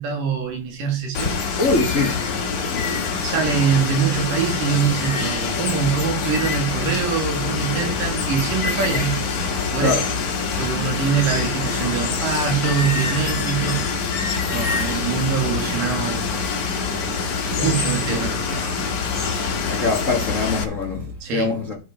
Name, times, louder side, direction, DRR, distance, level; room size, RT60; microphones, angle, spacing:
voice 1, 0.0-1.4 3.2-9.3 9.7-10.0 10.6-14.1 14.5-16.3 17.6-19.0 21.2-21.5, right 7 dB, 90° right, 3.8 m, -24 dB
Water, 1.1-20.6, left 5 dB, 55° left, 2.6 m, -25 dB
voice 2, 1.6-2.2 2.7-3.2 9.8-10.1 17.4-17.8 18.1-18.3 19.7-21.8, left 3 dB, 80° left, 0.7 m, -24 dB
sound 1, 5.7-21.2, left 6 dB, 75° right, 2.9 m, -35 dB
13.5 x 5.1 x 4.9 m
omnidirectional pair, 3.7 m